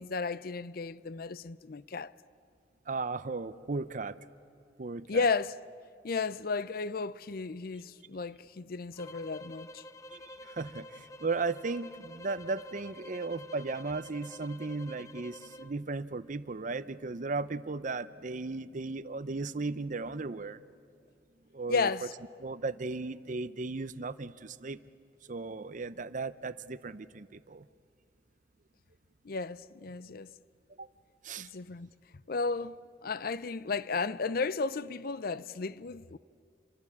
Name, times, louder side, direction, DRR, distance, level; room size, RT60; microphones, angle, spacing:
voice 1, 0.0-2.1 5.1-5.6 6.0-9.8 21.7-22.1 29.2-30.3 31.4-31.9 32.3-36.2, left 4 dB, 55° left, 0.6 m, -33 dB
voice 2, 2.9-4.2 4.8-5.3 10.1-20.6 21.5-21.9 22.4-24.8 25.2-27.7 30.8-30.9 31.2-31.5, right 3 dB, 45° right, 0.6 m, -36 dB
sound 1, 8.9-15.7, left 1 dB, 20° left, 0.7 m, -48 dB
28.5 x 23.5 x 8.6 m
head